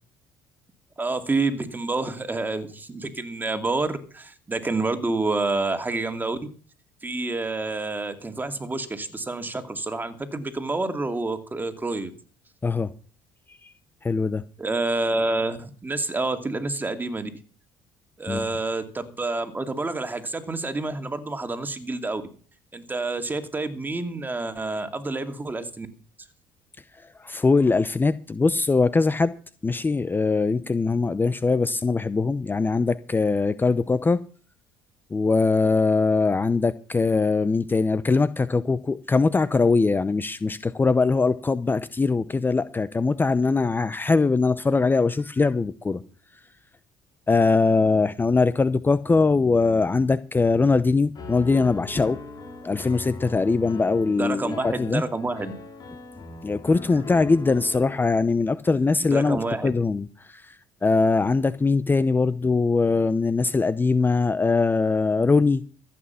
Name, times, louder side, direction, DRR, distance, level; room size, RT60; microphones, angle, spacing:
voice 1, 1.0-6.5 7.0-12.1 14.6-17.3 18.2-22.2 22.7-25.9 54.2-55.5 59.1-59.7, right 3 dB, 20° right, 2.5 m, -28 dB
voice 2, 14.0-14.4 18.3-18.5 27.2-29.3 29.6-34.2 35.1-46.0 47.3-52.2 52.6-55.0 56.4-65.6, left 4 dB, 20° left, 0.7 m, -22 dB
Piano, 51.1-58.0, left 4 dB, 40° left, 4.4 m, -40 dB
14.5 x 8.8 x 5.8 m
supercardioid pair, 75°, 10 cm